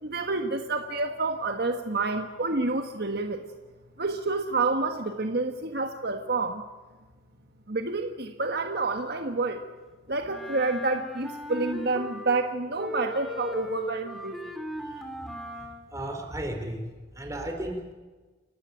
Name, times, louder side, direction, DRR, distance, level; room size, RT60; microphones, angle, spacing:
voice 1, 0.0-3.4 4.0-6.6 7.7-9.6 10.1-14.3, right 3 dB, 55° right, 6 dB, 1.6 m, -28 dB
Wind instrument woodwind instrument, 10.2-12.5 12.7-15.9, equal, ahead, 2.8 m, -37 dB
voice 2, 15.9-16.9 17.2-17.9, right 1 dB, 15° right, 3 dB, 4.3 m, -34 dB
30.0 x 14.5 x 9.5 m, 1.3 s
head